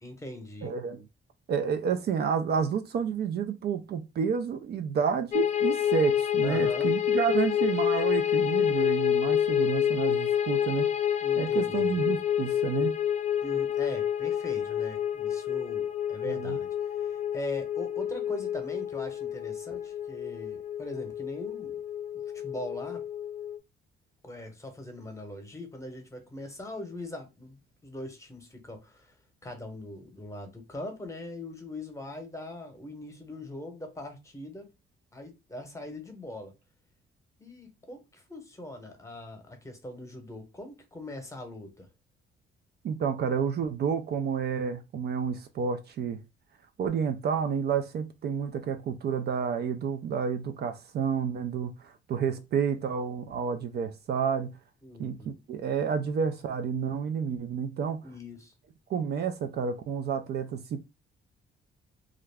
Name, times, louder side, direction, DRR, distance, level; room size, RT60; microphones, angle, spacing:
voice 1, 0.0-0.7 6.4-6.9 11.2-12.0 13.4-21.8 22.3-23.0 24.2-29.1 29.4-34.7 35.1-36.5 37.4-41.9 54.8-55.4 58.0-58.5, left 1 dB, 15° left, 0.9 m, -41 dB
voice 2, 0.6-1.0 1.5-10.9 11.4-12.9 16.3-16.6 42.8-46.2 46.8-54.5 55.0-55.2 55.5-58.0 58.9-60.8, right 6 dB, 55° right, 0.4 m, -30 dB
sound 1, 5.3-23.6, left 10 dB, 40° left, 0.4 m, -28 dB
2.4 x 2.0 x 3.3 m
cardioid pair, 90°, 20 cm